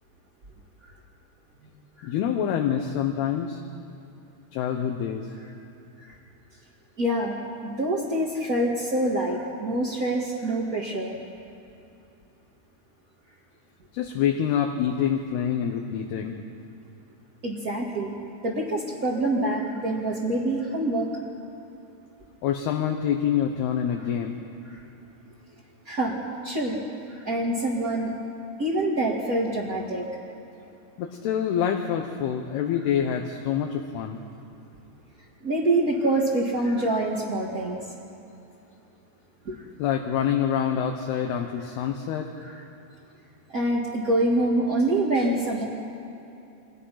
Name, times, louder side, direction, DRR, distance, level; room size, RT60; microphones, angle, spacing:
voice 1, 2.0-3.6 4.5-5.3 13.9-16.3 22.4-24.4 31.0-34.2 39.8-42.3, left 8 dB, 70° left, 3 dB, 2.9 m, -26 dB
voice 2, 7.0-7.4 7.6-11.1 17.4-18.1 18.4-21.1 25.9-26.1 26.4-26.7 27.2-28.1 28.6-30.0 35.4-37.8 39.4-39.6 42.4-42.5 43.5-45.6, right 1 dB, 35° right, -5 dB, 1.5 m, -25 dB
29.5 x 24.5 x 5.9 m, 2.8 s
omnidirectional pair, 5.0 m